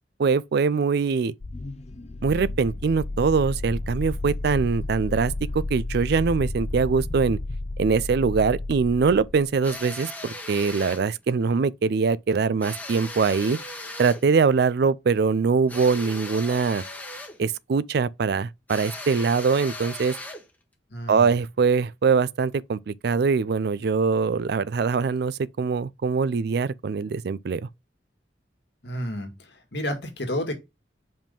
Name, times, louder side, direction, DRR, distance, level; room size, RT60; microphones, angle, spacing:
voice 1, 0.2-1.3 2.2-7.4 7.8-13.6 14.0-16.8 17.4-20.1 21.1-27.6, right 5 dB, 60° right, 0.4 m, -23 dB
sound 1, 1.4-9.6, left 2 dB, 35° left, 0.5 m, -32 dB
sound 2, 9.6-11.1 12.6-14.3 15.7-17.4 18.7-20.5, left 2 dB, 10° left, 1.1 m, -38 dB
voice 2, 20.9-21.3 28.8-30.5, equal, 65° left, 2.0 m, -31 dB
5.2 x 3.5 x 5.3 m
head